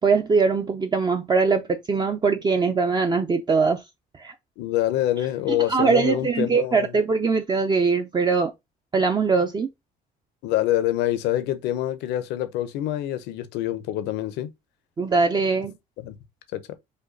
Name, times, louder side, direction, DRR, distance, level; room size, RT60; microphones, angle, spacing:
voice 1, 0.0-3.8 4.2-4.3 5.5-8.5 8.9-9.7 15.0-15.7, right 4 dB, 25° right, 0.6 m, -22 dB
voice 2, 4.6-7.0 10.4-14.5 16.0-16.2 16.5-16.6, left 13 dB, 90° left, 0.8 m, -26 dB
5.3 x 2.3 x 3.9 m
cardioid pair, 110°, 17 cm